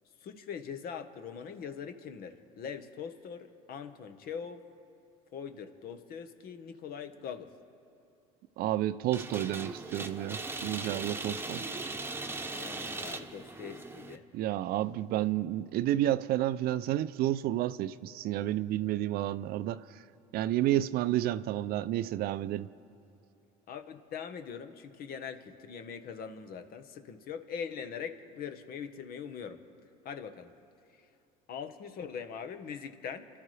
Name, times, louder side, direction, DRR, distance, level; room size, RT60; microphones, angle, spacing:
voice 1, 0.2-4.6 5.3-7.5 12.5-14.2 23.7-29.6 30.0-30.5 30.9-31.1 31.5-33.3, left 7 dB, 55° left, 1.3 m, -42 dB
voice 2, 8.6-11.6 14.3-20.0 20.3-22.7, right 13 dB, 60° right, 0.5 m, -30 dB
sound 1, 9.1-14.2, right 3 dB, 15° right, 1.1 m, -39 dB
29.0 x 13.0 x 3.4 m
hypercardioid pair, 75°, 18 cm